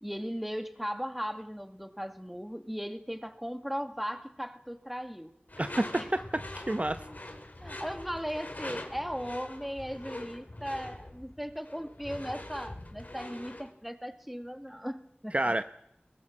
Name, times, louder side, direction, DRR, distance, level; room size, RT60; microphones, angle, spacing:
voice 1, 0.0-5.3 6.0-6.1 7.6-15.4, equal, 5° right, 9 dB, 2.1 m, -37 dB
Door / Screech, 5.5-13.7, left 1 dB, 50° left, 3.1 m, -43 dB
voice 2, 5.6-7.0 15.3-15.6, right 1 dB, 40° right, 9 dB, 0.9 m, -29 dB
22.0 x 20.5 x 7.4 m, 0.75 s
wide cardioid pair, 45°, 4 cm